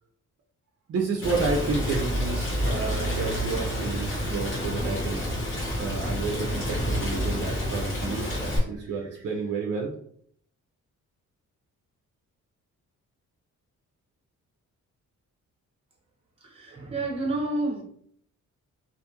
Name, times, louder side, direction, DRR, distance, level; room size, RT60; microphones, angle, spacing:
voice 1, 0.9-5.2 5.8-9.9, right 4 dB, 50° right, 0 dB, 0.5 m, -30 dB
Rain, 1.2-8.6, equal, 40° left, 1.0 m, -29 dB
voice 2, 16.4-17.8, right 2 dB, 20° right, -2 dB, 0.8 m, -29 dB
2.5 x 2.4 x 2.9 m, 0.63 s
wide cardioid pair, 170°, 31 cm